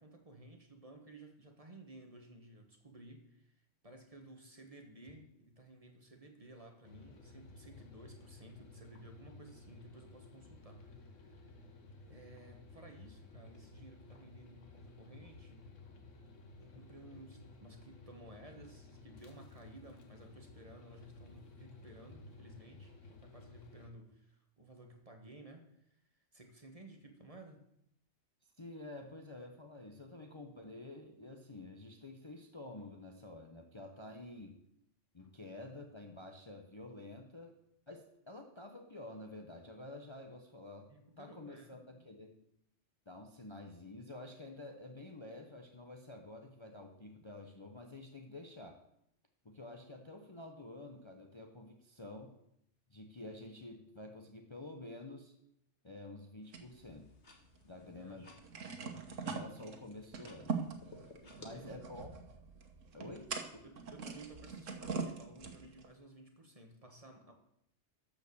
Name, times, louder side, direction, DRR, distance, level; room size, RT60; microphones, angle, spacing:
voice 1, 0.0-3.5 3.8-11.5 12.0-15.7 16.6-26.0 26.3-27.6 40.9-41.8 57.8-58.3 61.2-61.8 63.6-67.3, right 2 dB, 30° right, 3 dB, 1.5 m, -56 dB
sound 1, 6.8-23.9, left 3 dB, 80° left, 1.6 m, -55 dB
voice 2, 28.6-34.6 35.1-37.5 37.9-40.9 41.2-42.4 43.1-48.8 49.4-52.4 52.9-55.3 55.8-57.1 57.6-58.3 58.8-60.7 61.4-62.1 62.9-63.6, left 2 dB, 25° left, 3 dB, 0.9 m, -49 dB
sound 2, 56.4-61.5, left 3 dB, 65° left, 2.0 m, -59 dB
sound 3, 56.5-57.7 58.0-58.1 58.3-65.9, right 5 dB, 90° right, 1.5 m, -43 dB
12.5 x 5.2 x 7.0 m, 0.77 s
omnidirectional pair, 1.3 m